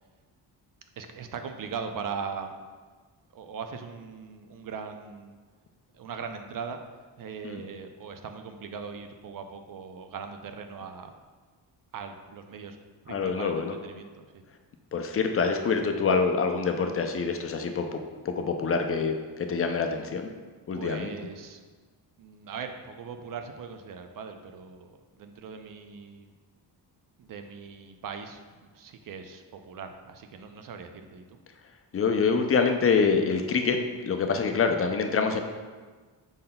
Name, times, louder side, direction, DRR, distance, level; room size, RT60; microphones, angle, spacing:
voice 1, 1.0-2.6 3.3-5.4 5.9-6.8 7.2-11.1 11.9-12.8 13.0-14.4 20.7-21.6 22.2-26.3 27.2-31.4, right 6 dB, 50° right, 7 dB, 0.5 m, -40 dB
voice 2, 13.1-13.7 14.9-18.0 18.2-20.3 20.7-21.1 31.9-35.4, left 5 dB, 35° left, 5 dB, 0.4 m, -26 dB
5.4 x 3.8 x 2.2 m, 1.4 s
cardioid pair, 85°, 44 cm